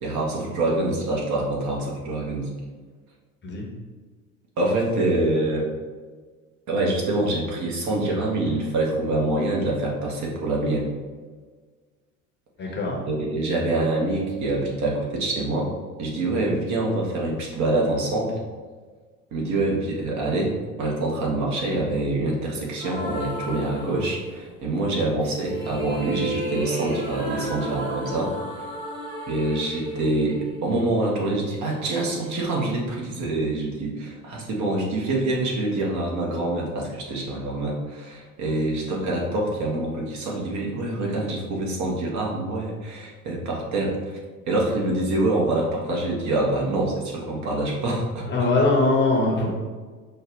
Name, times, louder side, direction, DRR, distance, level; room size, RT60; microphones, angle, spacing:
voice 1, 0.0-2.5 4.6-5.7 6.7-10.9 13.0-15.7 16.0-18.4 19.3-28.3 29.3-44.2 44.5-48.5, right 2 dB, 45° right, -2 dB, 1.3 m, -25 dB
voice 2, 12.6-13.0 48.3-49.5, left 2 dB, 25° left, -1 dB, 1.0 m, -21 dB
sound 1, 22.8-24.5 25.2-31.3, right 1 dB, 10° right, 1.3 m, -32 dB
5.3 x 2.4 x 3.1 m, 1.5 s
figure-of-eight pair, 70°, 42 cm